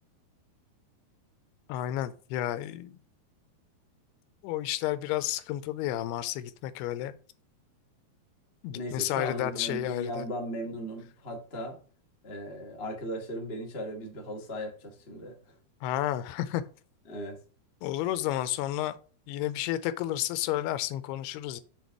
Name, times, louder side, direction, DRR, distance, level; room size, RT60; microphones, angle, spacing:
voice 1, 1.7-3.0 4.4-7.2 8.6-10.2 15.8-16.6 17.8-19.0 19.3-21.6, left 13 dB, 85° left, 2.6 m, -31 dB
voice 2, 8.7-11.8 12.2-15.6 17.1-17.4, equal, 40° left, 0.8 m, -37 dB
6.7 x 4.1 x 4.6 m
omnidirectional pair, 4.7 m